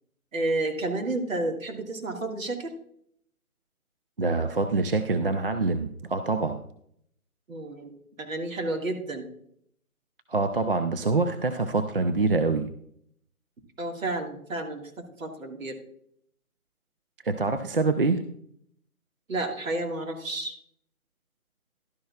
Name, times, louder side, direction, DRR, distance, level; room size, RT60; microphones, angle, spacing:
voice 1, 0.3-2.7 7.5-9.3 13.8-14.9 15.2-15.8 19.3-20.6, right 2 dB, 65° right, 3 dB, 1.9 m, -31 dB
voice 2, 4.2-6.6 10.3-12.7 17.2-18.2, right 3 dB, 40° right, 8 dB, 0.4 m, -25 dB
11.5 x 10.0 x 2.4 m, 0.68 s
figure-of-eight pair, 145°, 44 cm